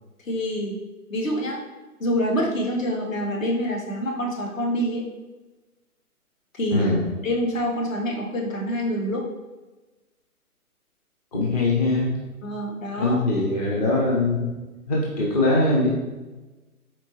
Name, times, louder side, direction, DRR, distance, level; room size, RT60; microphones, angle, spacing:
voice 1, 0.2-0.8 1.1-1.6 2.0-5.0 6.5-6.9 7.2-9.3 12.4-13.2, equal, 60° left, 0 dB, 1.1 m, -26 dB
voice 2, 6.7-7.0 11.3-12.1 13.0-14.5 14.9-15.9, left 2 dB, 30° left, -4 dB, 0.6 m, -22 dB
4.4 x 3.7 x 2.8 m, 1.2 s
figure-of-eight pair, 130°, 44 cm